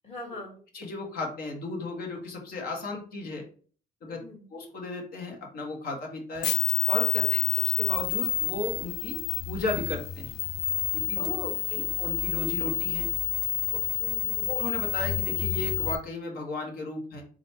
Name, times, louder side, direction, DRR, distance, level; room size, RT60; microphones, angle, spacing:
voice 1, 0.0-0.6 4.1-4.5 7.2-7.4 11.2-11.9 14.0-14.5, left 1 dB, 40° left, -1 dB, 1.9 m, -41 dB
voice 2, 0.7-3.5 4.0-4.2 4.5-6.5 6.9-9.2 9.5-10.4 10.9-11.3 11.7-13.1 14.5-17.2, left 2 dB, 60° left, 1 dB, 1.4 m, -35 dB
sound 1, 6.4-16.0, left 14 dB, 80° left, 0.4 m, -28 dB
3.9 x 2.5 x 4.3 m, 0.42 s
cardioid pair, 110°, 17 cm